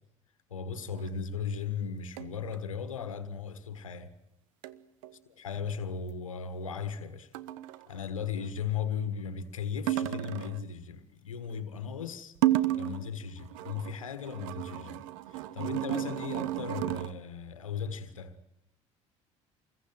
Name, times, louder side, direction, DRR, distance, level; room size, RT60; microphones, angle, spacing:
voice 1, 0.5-4.1 5.3-7.3 7.9-18.4, left 6 dB, 90° left, 1.6 m, -37 dB
sound 1, 0.9-1.1 2.2-2.5 4.6-4.8 5.0-5.1 7.3-7.9 9.9-10.7 12.4-13.1 13.4-17.1, right 14 dB, 75° right, 1.2 m, -32 dB
27.0 x 21.5 x 9.3 m
hypercardioid pair, 60°, 17 cm